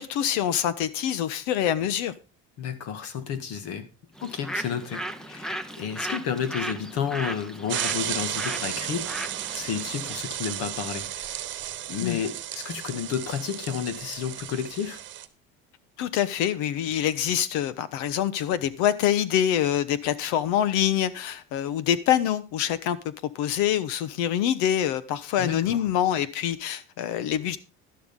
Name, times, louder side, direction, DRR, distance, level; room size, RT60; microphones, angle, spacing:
voice 1, 0.0-2.1 12.0-12.2 16.0-23.0 23.3-27.6, left 10 dB, 75° left, 1.2 m, -25 dB
voice 2, 2.6-3.9 4.2-11.4 11.9-15.0 25.4-25.9, left 7 dB, 55° left, 1.9 m, -32 dB
Bird, 4.2-10.3, right 1 dB, ahead, 0.7 m, -36 dB
sound 1, 7.7-15.3, right 12 dB, 40° right, 1.3 m, -34 dB
12.0 x 11.5 x 3.7 m
cardioid pair, 150°, 30 cm